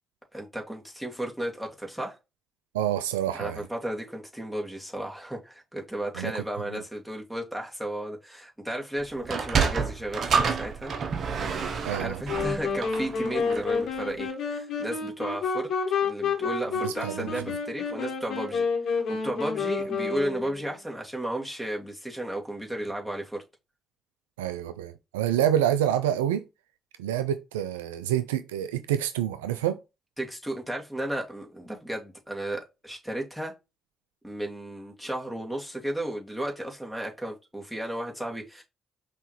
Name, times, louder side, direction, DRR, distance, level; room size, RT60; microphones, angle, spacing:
voice 1, 0.3-2.2 3.3-10.9 11.9-15.7 16.0-23.4 30.2-33.5 34.2-38.6, right 1 dB, ahead, 2.2 m, -34 dB
voice 2, 2.7-3.6 6.2-6.3 6.7-6.8 11.8-12.2 16.8-17.3 24.4-26.4 27.0-29.8, right 11 dB, 85° right, 0.3 m, -27 dB
Sliding door, 9.2-13.8, right 5 dB, 55° right, 0.8 m, -28 dB
sound 1, 12.3-20.7, left 5 dB, 65° left, 1.5 m, -29 dB
5.4 x 3.0 x 3.1 m
hypercardioid pair, 40°, 0 cm